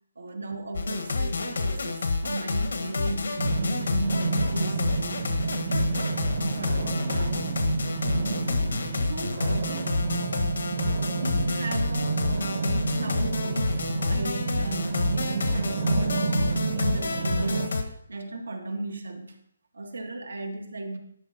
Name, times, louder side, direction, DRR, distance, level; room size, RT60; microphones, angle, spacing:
voice 1, 0.2-5.2 5.7-7.5 9.0-19.4 19.7-21.0, right 2 dB, 90° right, 3 dB, 1.7 m, -36 dB
sound 1, 0.7-17.8, left 3 dB, 80° left, 1.5 m, -29 dB
sound 2, 3.4-17.7, right 4 dB, 45° right, 1.0 m, -30 dB
12.0 x 5.3 x 4.2 m, 0.71 s
hypercardioid pair, 160°, 0 cm